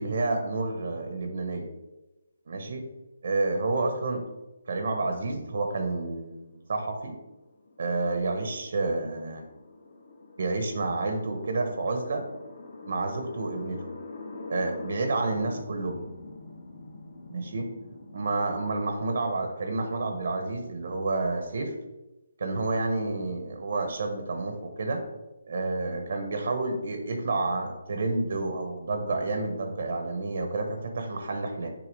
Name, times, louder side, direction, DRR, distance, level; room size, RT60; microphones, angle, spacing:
voice 1, 0.0-1.7 2.5-2.9 3.2-4.3 4.7-7.1 7.8-9.4 10.4-12.2 12.8-13.9 14.5-16.0 17.3-17.7 18.1-21.7 22.4-25.0 25.5-31.7, right 3 dB, 60° right, 5 dB, 0.9 m, -29 dB
sound 1, 6.2-18.7, left 3 dB, 45° left, 1.3 m, -45 dB
7.0 x 2.8 x 5.2 m, 1.0 s
hypercardioid pair, 160°, 0 cm